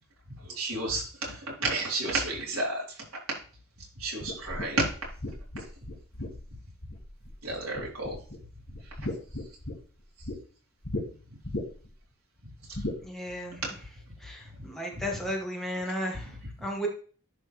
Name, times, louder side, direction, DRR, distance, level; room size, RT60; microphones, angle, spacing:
voice 1, 0.5-2.8 4.0-4.9 7.4-8.2, right 2 dB, 85° right, -4 dB, 3.8 m, -31 dB
sound 1, 4.2-7.4 7.7-8.4 8.7-10.4 10.8-11.0 11.4-11.9 12.7-13.0, left 1 dB, 50° left, 2.3 m, -36 dB
voice 2, 13.0-13.6 14.2-16.9, equal, ahead, -1 dB, 1.9 m, -34 dB
11.0 x 4.3 x 3.4 m, 0.40 s
head